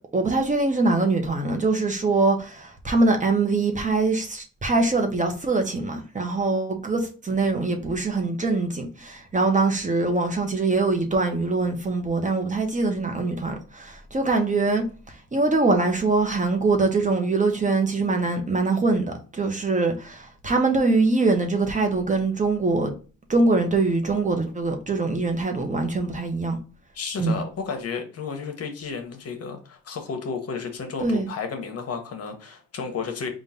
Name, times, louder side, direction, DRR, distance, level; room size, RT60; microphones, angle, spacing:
voice 1, 0.1-22.9 23.3-26.6 27.2-27.4 31.0-31.3, right 3 dB, 25° right, 0.9 m, -23 dB
voice 2, 26.9-33.3, left 5 dB, 55° left, 1.0 m, -32 dB
3.8 x 2.4 x 4.1 m
cardioid pair, 90°, 30 cm